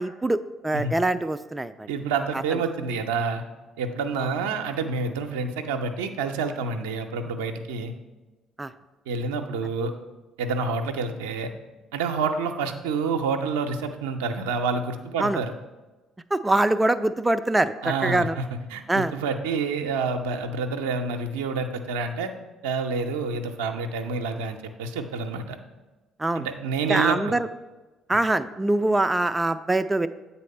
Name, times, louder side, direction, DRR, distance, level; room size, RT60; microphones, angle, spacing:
voice 1, 0.0-1.9 4.2-4.3 8.6-8.7 15.2-15.4 16.3-17.7 18.0-18.4 18.9-19.1 26.2-26.5 26.9-27.5 28.1-30.1, right 2 dB, 15° right, 10 dB, 0.3 m, -23 dB
voice 2, 1.9-3.4 3.8-7.9 9.1-9.9 10.4-11.5 11.9-15.5 17.8-18.4 18.7-22.3 22.6-25.6 26.3-27.3, right 4 dB, 75° right, 5 dB, 0.5 m, -28 dB
8.2 x 4.2 x 5.3 m, 1.1 s
figure-of-eight pair, 50°, 0 cm